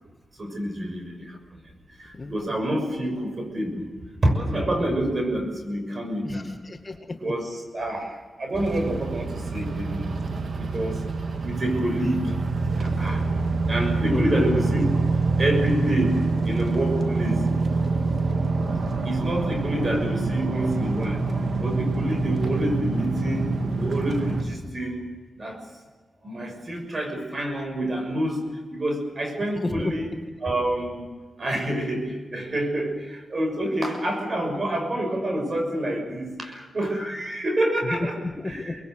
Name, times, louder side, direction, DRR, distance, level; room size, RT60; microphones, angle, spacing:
voice 1, 0.4-1.6 1.9-3.9 4.2-6.5 7.2-10.1 10.6-11.0 11.4-12.4 12.8-13.3 13.7-14.9 15.4-17.5 19.0-21.2 21.6-23.5 23.8-25.0 25.4-25.6 26.2-30.1 30.4-31.1 31.4-38.1 38.4-38.8, right 1 dB, 45° right, 4 dB, 6.3 m, -27 dB
voice 2, 2.1-2.7 6.2-7.2 14.1-14.9 29.6-29.9 37.9-38.8, left 2 dB, 30° left, 4 dB, 2.1 m, -32 dB
sound 1, 8.5-24.4, right 3 dB, 60° right, 2.3 m, -26 dB
25.5 x 21.0 x 8.1 m, 1.4 s
cardioid pair, 80°, 0 cm